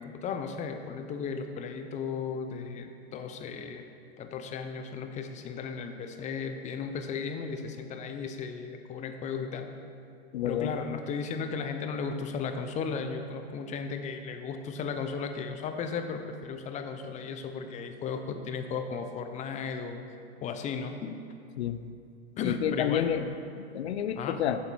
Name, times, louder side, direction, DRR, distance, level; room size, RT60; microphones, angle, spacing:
voice 1, 0.0-3.8 4.2-9.7 10.4-20.0 20.4-21.2 22.4-23.1 24.2-24.4, left 5 dB, 25° left, 7 dB, 0.6 m, -35 dB
voice 2, 10.3-10.7 21.6-21.8 22.4-24.6, left 9 dB, 85° left, 11 dB, 0.6 m, -30 dB
8.9 x 7.1 x 4.6 m, 2.4 s
hypercardioid pair, 130°, 32 cm